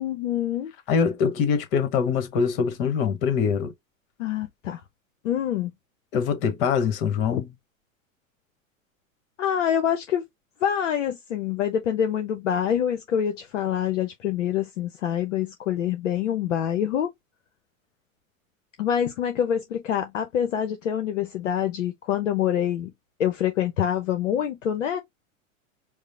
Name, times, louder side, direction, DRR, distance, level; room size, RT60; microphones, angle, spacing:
voice 1, 0.0-0.7 4.2-4.8 5.2-5.7 7.3-7.4 9.4-10.2 10.6-17.1 18.8-22.9 23.2-25.0, left 9 dB, 60° left, 0.7 m, -26 dB
voice 2, 0.9-3.7 6.1-7.5, left 6 dB, 40° left, 1.1 m, -23 dB
4.7 x 2.0 x 2.6 m
figure-of-eight pair, 90°, 42 cm